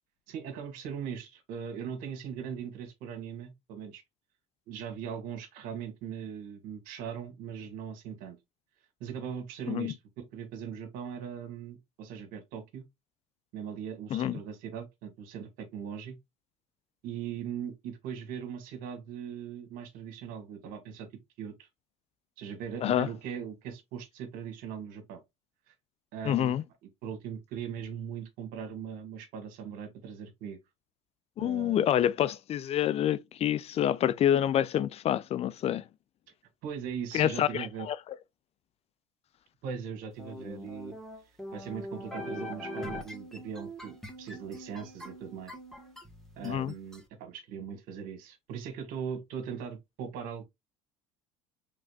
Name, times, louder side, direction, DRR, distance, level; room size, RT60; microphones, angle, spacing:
voice 1, 0.3-4.0 4.7-8.4 9.0-12.8 13.5-16.2 17.0-21.1 21.4-21.7 22.4-25.2 25.7-25.8 26.1-26.5 27.0-30.6 31.4-31.9 36.6-37.9 39.6-41.0 41.5-45.5 46.4-50.5, right 7 dB, 65° right, 1.7 m, -40 dB
voice 2, 26.2-26.6 31.4-35.9 37.1-38.0 46.4-46.7, left 11 dB, 40° left, 0.4 m, -27 dB
sound 1, 40.2-47.0, equal, ahead, 1.7 m, -42 dB
4.9 x 3.8 x 2.4 m
hypercardioid pair, 80°, 16 cm